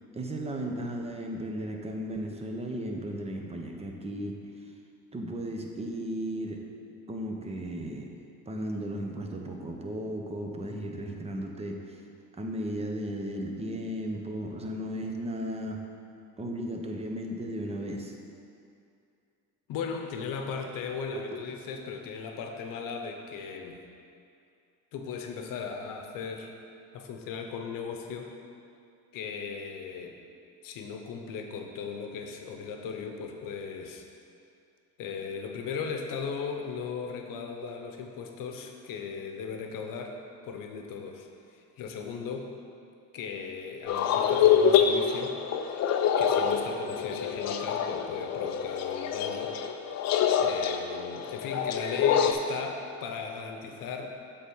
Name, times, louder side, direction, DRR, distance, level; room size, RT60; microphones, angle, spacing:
voice 1, 0.1-4.4 5.1-6.6 7.1-8.1 8.5-12.0 12.4-15.8 16.4-18.1 21.1-21.4 37.3-37.4, right 1 dB, 15° right, 2 dB, 0.8 m, -35 dB
voice 2, 19.7-23.8 24.9-26.5 26.9-28.3 29.1-30.2 30.6-34.1 35.0-40.2 40.4-42.5 43.1-45.4 46.2-49.6 50.4-54.1, left 5 dB, 60° left, 4 dB, 0.9 m, -37 dB
sound 1, 43.9-52.3, left 8 dB, 45° left, 0.5 m, -26 dB
7.9 x 3.8 x 5.5 m, 2.5 s
cardioid pair, 105°, 37 cm